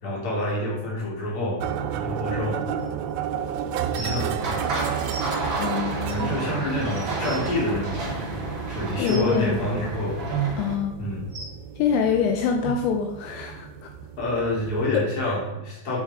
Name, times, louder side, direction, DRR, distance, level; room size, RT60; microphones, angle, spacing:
voice 1, 0.0-1.6 1.9-2.6 3.9-4.4 6.1-10.2 11.0-11.3 14.2-16.0, left 1 dB, 25° left, -5 dB, 2.2 m, -28 dB
sound 1, 1.6-14.9, right 8 dB, 90° right, 3.2 m, -32 dB
sound 2, 3.9-4.2 5.1-5.2 6.1-6.2 6.7-6.8 7.1-7.4 9.0-9.3 10.3-10.5 11.3-11.5 12.6-12.7 13.5-13.6 14.2-14.3, right 8 dB, 70° right, 1.0 m, -32 dB
sound 3, 4.4-10.8, right 2 dB, 45° right, 1.6 m, -31 dB
voice 2, 5.6-6.3 8.9-9.8 10.6-11.0 11.8-13.9 14.9-15.4, left 7 dB, 80° left, 4 dB, 2.9 m, -25 dB
9.5 x 7.1 x 3.7 m, 0.95 s
omnidirectional pair, 5.6 m